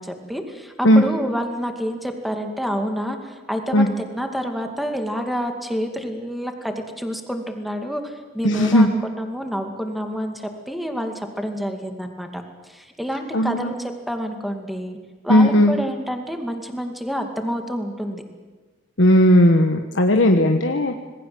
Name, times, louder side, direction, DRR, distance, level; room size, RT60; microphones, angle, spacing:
voice 1, 0.0-15.0 15.2-18.2, equal, ahead, 4 dB, 2.3 m, -28 dB
voice 2, 8.4-8.9 13.3-13.7 15.3-15.7 19.0-21.0, equal, 70° left, 4 dB, 1.4 m, -16 dB
26.5 x 20.0 x 7.8 m, 1.3 s
head